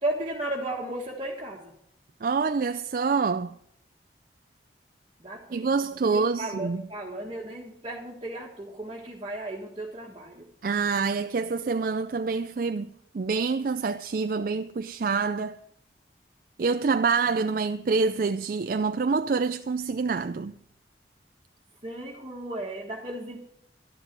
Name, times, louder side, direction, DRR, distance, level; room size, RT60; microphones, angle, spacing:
voice 1, 0.0-1.7 5.2-10.5 17.3-17.5 21.8-23.4, right 1 dB, 30° right, 1.6 m, -35 dB
voice 2, 2.2-3.5 5.5-6.8 10.6-15.6 16.6-20.5, right 4 dB, 50° right, 0.4 m, -26 dB
12.5 x 11.0 x 6.0 m
head